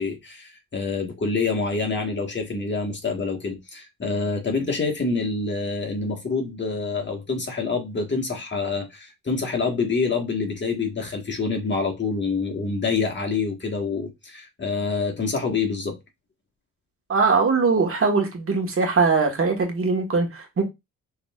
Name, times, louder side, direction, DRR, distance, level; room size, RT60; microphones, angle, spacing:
voice 1, 0.0-16.0, left 4 dB, 30° left, 1.5 m, -26 dB
voice 2, 17.1-20.6, right 4 dB, 40° right, 1.5 m, -21 dB
6.4 x 3.1 x 2.4 m
cardioid pair, 85°, 34 cm